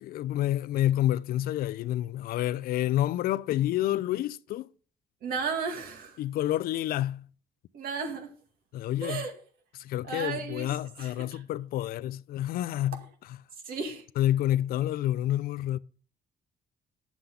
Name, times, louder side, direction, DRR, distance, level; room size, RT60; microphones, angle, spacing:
voice 1, 0.0-4.7 6.2-7.3 8.7-9.2 9.8-13.0 14.2-15.8, left 13 dB, 75° left, 0.5 m, -28 dB
voice 2, 5.2-6.2 7.7-8.3 9.0-9.3 10.0-11.4 13.6-14.0, right 5 dB, 75° right, 2.2 m, -34 dB
9.6 x 7.1 x 3.8 m
cardioid pair, 120°, 15 cm